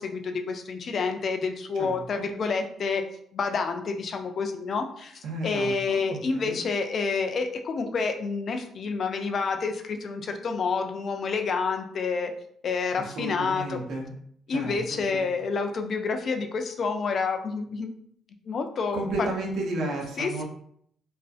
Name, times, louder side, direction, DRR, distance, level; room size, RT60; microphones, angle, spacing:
voice 1, 0.0-3.0 3.3-12.3 12.6-13.8 14.5-17.9 18.5-19.0 20.2-20.4, left 4 dB, 45° left, 5 dB, 0.3 m, -28 dB
voice 2, 1.7-2.3 5.2-6.6 13.0-14.1 14.5-15.3 18.9-20.4, right 2 dB, 65° right, 0 dB, 0.6 m, -33 dB
2.4 x 2.3 x 2.4 m, 0.67 s
cardioid pair, 135°, 0 cm